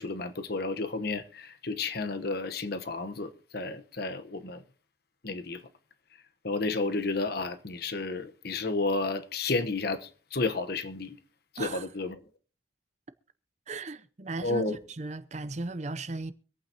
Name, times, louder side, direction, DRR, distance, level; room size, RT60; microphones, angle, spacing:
voice 1, 0.0-4.6 5.2-5.6 6.4-11.2 11.6-12.2 14.4-14.8, left 3 dB, 55° left, 1.1 m, -32 dB
voice 2, 13.7-16.3, right 3 dB, 35° right, 0.6 m, -36 dB
25.0 x 8.8 x 2.9 m
head